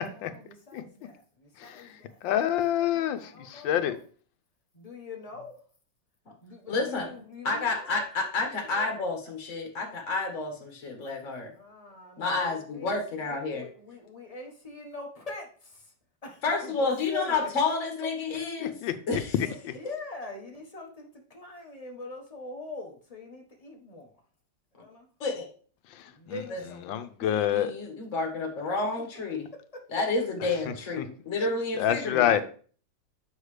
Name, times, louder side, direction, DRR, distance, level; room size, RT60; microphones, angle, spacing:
voice 1, 0.0-2.2 2.7-4.0 4.7-5.6 6.4-8.0 8.6-9.0 11.4-15.9 16.2-17.5 19.7-24.1 24.7-25.1 26.0-27.0 29.5-29.8 30.9-31.0, left 3 dB, 20° left, 1 dB, 1.2 m, -43 dB
voice 2, 1.6-1.9 2.2-4.0 18.6-19.2 19.6-19.7 25.9-26.4 26.9-27.7 31.0-31.1 31.7-32.4, left 11 dB, 90° left, 10 dB, 1.4 m, -27 dB
voice 3, 6.7-7.1 7.4-11.5 12.2-13.7 16.4-18.7 19.1-19.5 25.2-25.4 26.5-26.6 27.2-29.5 29.9-32.4, left 3 dB, 45° left, 2 dB, 1.8 m, -30 dB
7.9 x 5.7 x 3.3 m, 0.43 s
omnidirectional pair, 2.0 m